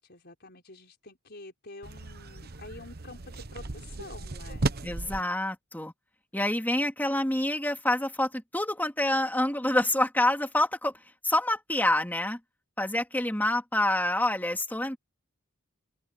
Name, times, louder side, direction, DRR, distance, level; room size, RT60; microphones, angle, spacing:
voice 1, 0.0-4.7, left 2 dB, 50° left, 4.9 m, -47 dB
sound 1, 1.8-5.2, right 2 dB, 50° right, 1.1 m, -35 dB
voice 2, 4.8-5.9 6.3-10.9 11.2-12.4 12.8-15.0, left 1 dB, 10° left, 2.8 m, -27 dB
open air
head